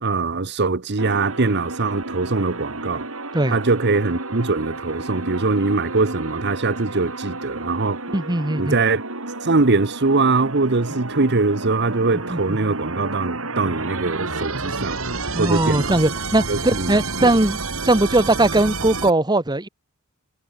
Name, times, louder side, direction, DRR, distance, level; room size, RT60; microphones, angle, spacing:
voice 1, 0.0-3.0 3.5-8.0 8.6-9.0 9.4-15.0 15.4-16.0 16.5-17.4, right 3 dB, 55° right, 1.1 m, -22 dB
sound 1, 1.0-19.1, right 3 dB, 70° right, 7.1 m, -31 dB
voice 2, 8.1-8.8 12.3-12.6 15.3-17.6 17.8-19.7, right 2 dB, 20° right, 1.4 m, -19 dB
head